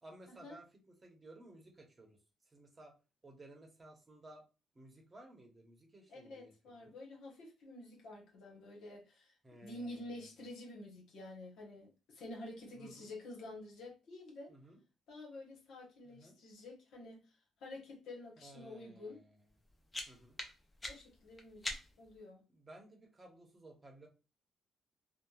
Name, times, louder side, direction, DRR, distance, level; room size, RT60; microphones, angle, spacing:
voice 1, 0.0-2.2 2.5-2.9 3.2-4.4 4.7-6.5 6.8-6.9 9.4-10.2 12.7-13.1 14.5-14.8 16.0-16.4 18.4-19.5 20.1-20.4 22.5-24.1, right 1 dB, 25° right, 0.8 m, -57 dB
voice 2, 6.1-9.3 9.6-14.5 15.1-17.3 17.6-19.2 20.8-22.4, left 2 dB, 75° left, 1.0 m, -49 dB
sound 1, 19.5-22.2, left 1 dB, 20° left, 0.6 m, -45 dB
2.8 x 2.2 x 2.3 m
cardioid pair, 90°, 0 cm